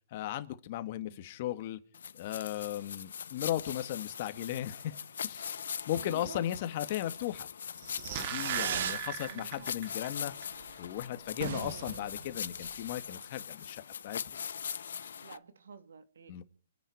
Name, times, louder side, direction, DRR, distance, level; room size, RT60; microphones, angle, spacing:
voice 1, 0.1-1.8 2.2-7.5 8.2-10.3 10.8-14.4 16.3-16.4, left 13 dB, 35° left, 1.8 m, -36 dB
voice 2, 0.9-1.2 5.9-6.4 8.5-8.9 9.2-9.7 11.5-12.0 15.2-16.4, right 6 dB, 80° right, 2.5 m, -49 dB
sound 1, 1.9-15.4, left 7 dB, 70° left, 1.0 m, -42 dB
sound 2, 7.7-10.1 10.4-10.5, right 11 dB, 30° right, 1.2 m, -39 dB
Fireworks, 8.1-9.1 9.4-10.0 10.3-10.4 10.6-10.7 11.0-11.1 11.3-13.0, right 8 dB, 55° right, 1.7 m, -38 dB
28.0 x 10.5 x 4.9 m
hypercardioid pair, 165°, 0 cm